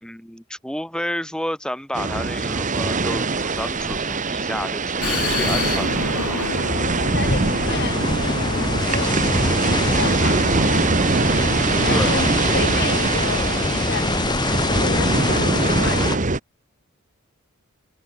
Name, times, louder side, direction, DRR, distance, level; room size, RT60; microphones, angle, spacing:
voice 1, 0.0-6.4 10.2-10.4 11.9-12.1, equal, 5° left, 3.3 m, -31 dB
sound 1, 1.9-16.4, right 3 dB, 35° right, 1.2 m, -23 dB
Vehicle, 5.0-12.3, left 3 dB, 75° left, 5.1 m, -30 dB
voice 2, 7.0-9.6 9.9-10.9 11.9-16.2, left 4 dB, 50° left, 1.7 m, -32 dB
sound 2, 7.2-16.2, left 2 dB, 20° left, 0.8 m, -24 dB
head